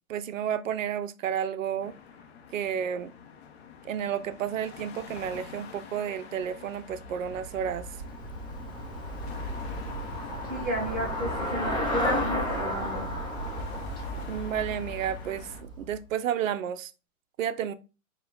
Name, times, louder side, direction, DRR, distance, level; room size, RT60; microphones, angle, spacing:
voice 1, 0.1-1.9 2.5-3.1 3.8-7.9 14.3-16.9 17.4-17.7, right 9 dB, 65° right, 0.5 m, -31 dB
sound 1, 1.8-15.6, left 6 dB, 45° left, 0.7 m, -47 dB
Traffic noise roadway noise / Bicycle, 6.9-16.1, equal, 10° left, 0.9 m, -33 dB
voice 2, 10.5-13.1, equal, 15° right, 0.3 m, -32 dB
4.5 x 2.2 x 3.8 m
hypercardioid pair, 145°, 43 cm